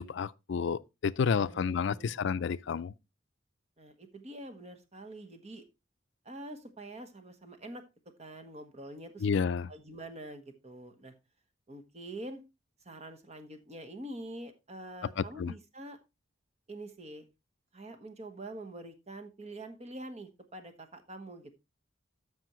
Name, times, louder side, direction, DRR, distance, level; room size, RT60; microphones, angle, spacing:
voice 1, 0.0-2.9 9.2-9.7 15.2-15.5, left 6 dB, 65° left, 0.4 m, -30 dB
voice 2, 1.3-2.2 3.8-5.6 6.2-7.8 8.2-9.3 9.7-11.1 11.7-12.4 12.8-16.0 16.7-17.3 17.7-21.5, right 1 dB, 35° right, 1.3 m, -45 dB
13.5 x 5.4 x 3.0 m
head